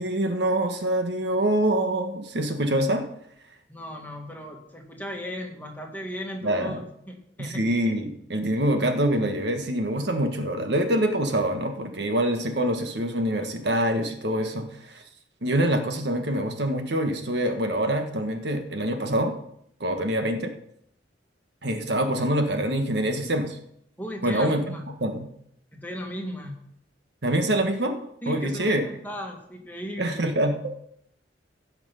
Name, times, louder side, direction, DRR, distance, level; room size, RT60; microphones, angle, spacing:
voice 1, 0.0-3.0 6.4-6.8 7.4-15.0 15.4-19.3 19.8-20.5 21.6-23.6 24.2-24.8 25.0-25.3 27.2-28.8 30.0-30.8, right 1 dB, 65° right, 5 dB, 1.4 m, -25 dB
voice 2, 3.7-7.6 14.4-14.6 24.0-24.9 25.7-26.7 28.2-30.3, equal, 10° left, 1 dB, 1.9 m, -36 dB
16.0 x 6.0 x 5.7 m, 0.72 s
head